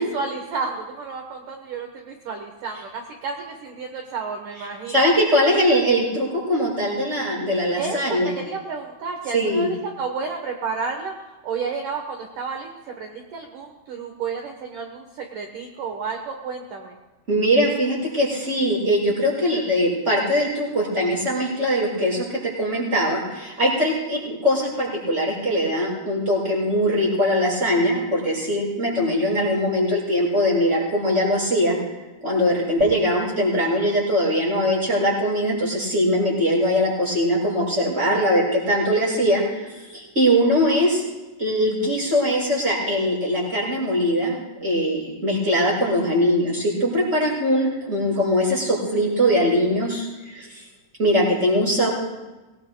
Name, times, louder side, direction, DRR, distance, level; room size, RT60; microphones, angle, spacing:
voice 1, 0.1-5.0 7.8-17.0, right 5 dB, 75° right, 3 dB, 1.9 m, -31 dB
voice 2, 4.9-8.3 9.3-9.7 17.3-31.8 32.2-41.0 41.4-50.6 51.0-51.9, equal, 15° right, -5 dB, 6.7 m, -21 dB
24.5 x 20.0 x 2.2 m, 1.1 s
omnidirectional pair, 5.3 m